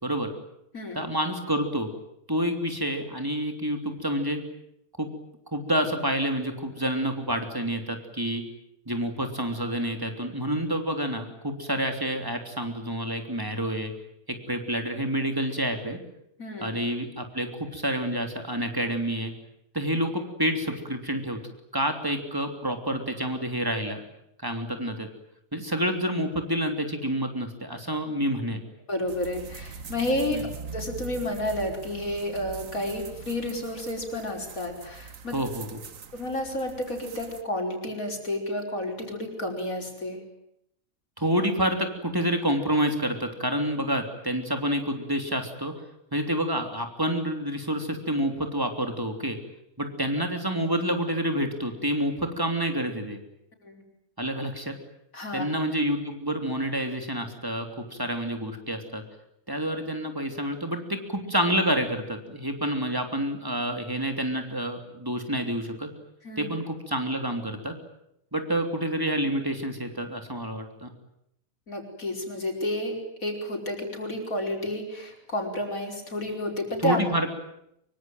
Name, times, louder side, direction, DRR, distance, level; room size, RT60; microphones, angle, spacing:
voice 1, 0.9-1.9 2.3-4.4 5.0-5.1 5.5-8.4 8.9-13.9 14.3-16.0 16.6-19.3 19.7-21.4 21.7-24.0 24.4-25.1 25.5-28.6 30.3-30.4 35.3-35.8 41.2-45.7 46.1-49.4 49.8-53.2 54.2-54.7 55.3-59.0 59.5-65.9 66.4-67.8 68.3-70.9 76.8-77.3, equal, 15° right, 5 dB, 3.3 m, -28 dB
voice 2, 16.4-16.7 28.9-30.4 30.7-35.4 36.1-40.2 53.6-53.8 55.1-55.4 66.2-66.5 71.7-77.0, left 1 dB, 75° left, 2 dB, 5.6 m, -31 dB
sound 1, 29.1-37.4, right 6 dB, 70° right, 1.6 m, -42 dB
24.5 x 24.0 x 9.2 m, 0.77 s
omnidirectional pair, 1.5 m